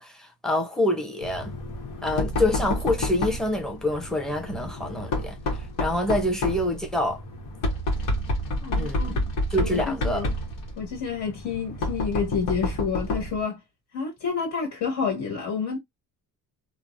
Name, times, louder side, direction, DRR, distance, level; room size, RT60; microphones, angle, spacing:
voice 1, 0.0-1.5 2.0-5.4 5.8-7.2 8.7-9.2 9.5-10.2, left 1 dB, ahead, 0.7 m, -26 dB
Knock, 1.2-13.4, left 1 dB, 75° left, 1.1 m, -30 dB
voice 2, 8.6-9.1 9.6-10.3 10.8-13.6 13.9-15.8, left 6 dB, 60° left, 1.7 m, -29 dB
3.2 x 2.1 x 2.5 m
cardioid pair, 135°, 32 cm